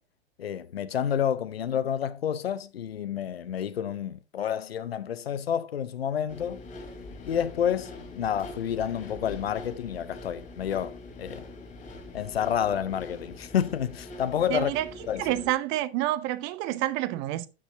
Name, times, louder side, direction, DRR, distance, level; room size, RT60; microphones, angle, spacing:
voice 1, 0.4-6.6 7.3-10.9 11.2-11.4 12.1-14.7 15.1-15.3, left 9 dB, 70° left, 0.7 m, -29 dB
Wind, 6.3-13.1, left 4 dB, 55° left, 1.9 m, -50 dB
sound 1, 6.3-15.5, left 2 dB, 25° left, 2.7 m, -44 dB
voice 2, 14.5-14.9 15.2-17.5, right 15 dB, 35° right, 0.8 m, -28 dB
12.5 x 7.0 x 2.9 m
figure-of-eight pair, 90°, 31 cm